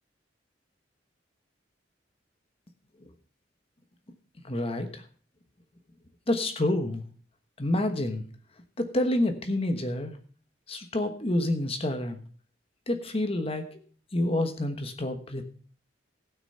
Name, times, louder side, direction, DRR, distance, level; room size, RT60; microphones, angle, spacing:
voice 1, 4.4-5.0 6.3-7.0 7.6-8.2 8.8-10.2 10.7-12.2 12.9-13.8 14.1-15.4, left 1 dB, 35° left, 7 dB, 1.2 m, -28 dB
16.5 x 6.0 x 5.6 m, 0.43 s
head